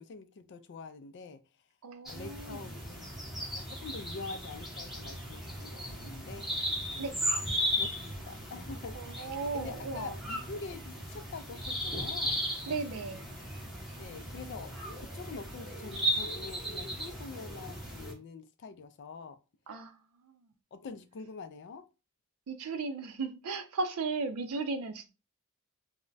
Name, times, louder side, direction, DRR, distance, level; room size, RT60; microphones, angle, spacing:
voice 1, 0.0-1.4 2.1-3.1 3.5-7.2 7.7-12.4 14.0-19.4 20.7-21.8, left 4 dB, 50° left, 0.4 m, -45 dB
voice 2, 1.8-2.6 7.0-7.2 8.9-10.2 12.7-13.3 19.7-20.4 22.5-25.1, right 4 dB, 70° right, 0.4 m, -36 dB
sound 1, 2.1-18.1, equal, ahead, 0.7 m, -36 dB
2.2 x 2.1 x 3.8 m
head